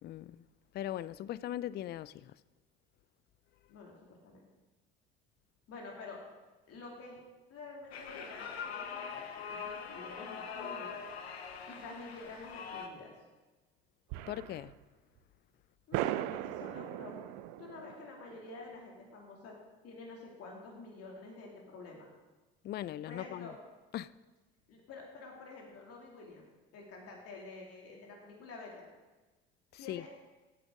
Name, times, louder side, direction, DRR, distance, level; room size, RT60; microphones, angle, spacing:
voice 1, 0.0-0.5 0.7-2.3 14.3-14.7 22.6-23.5 23.9-24.1 29.7-30.0, left 12 dB, 35° left, 0.4 m, -39 dB
voice 2, 3.7-4.4 5.7-6.2 6.7-7.2 7.5-9.6 9.9-11.0 11.7-13.1 15.9-17.2 17.6-19.6 19.8-22.1 23.1-23.6 24.7-26.4 26.7-28.9 29.8-30.1, left 3 dB, 50° left, 2.8 m, -49 dB
sound 1, 7.9-12.9, left 6 dB, 85° left, 1.0 m, -43 dB
sound 2, 14.1-14.8 15.2-15.3 15.9-19.0, right 14 dB, 65° right, 0.6 m, -39 dB
15.0 x 8.6 x 3.8 m
hypercardioid pair, 65°, 31 cm